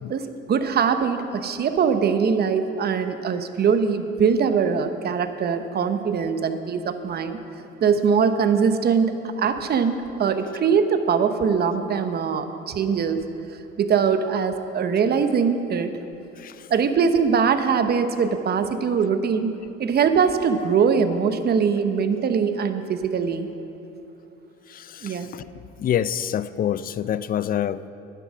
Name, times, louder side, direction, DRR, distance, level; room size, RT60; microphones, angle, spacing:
voice 1, 0.1-7.4 7.8-13.2 13.8-15.9 16.7-19.5 19.8-23.5 25.0-25.3, right 6 dB, 50° right, 9 dB, 0.9 m, -22 dB
voice 2, 16.4-16.7 24.7-25.5 25.8-27.9, left 10 dB, 45° left, 16 dB, 0.4 m, -27 dB
10.5 x 10.5 x 6.3 m, 2.8 s
supercardioid pair, 85°, 21 cm